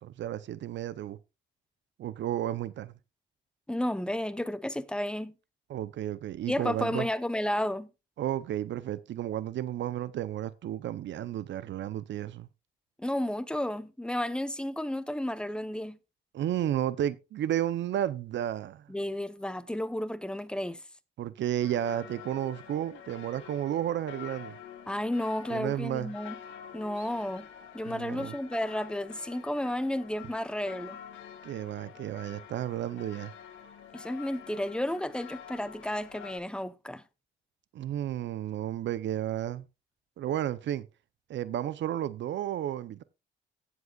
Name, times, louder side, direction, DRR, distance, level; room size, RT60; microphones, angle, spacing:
voice 1, 0.0-1.2 2.0-2.9 5.7-7.1 8.2-12.5 16.3-18.9 21.2-24.6 25.5-26.1 27.0-27.1 27.9-28.4 31.4-33.3 37.7-39.7 40.2-40.9 41.3-43.0, right 11 dB, 65° right, 0.7 m, -32 dB
voice 2, 3.7-5.3 6.5-7.9 13.0-16.0 18.9-20.8 24.9-26.4 26.7-27.5 27.7-31.0 33.9-37.0, left 1 dB, 5° left, 0.8 m, -32 dB
sound 1, 21.6-36.4, left 9 dB, 80° left, 2.0 m, -48 dB
16.0 x 7.8 x 2.4 m
cardioid pair, 90°, 20 cm